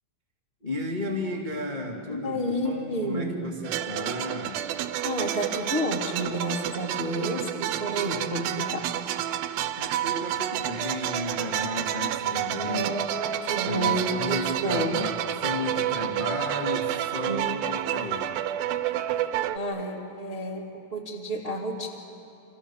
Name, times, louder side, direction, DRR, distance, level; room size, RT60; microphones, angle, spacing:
voice 1, 0.6-4.6 9.8-12.9 13.6-18.3, left 1 dB, 15° left, -1 dB, 1.6 m, -34 dB
voice 2, 2.1-3.4 5.0-8.9 12.6-15.0 17.2-17.6 19.5-21.9, equal, 20° right, 0 dB, 1.5 m, -30 dB
sound 1, 3.6-19.6, right 12 dB, 80° right, 2.6 m, -29 dB
30.0 x 26.0 x 7.1 m, 2.8 s
omnidirectional pair, 4.2 m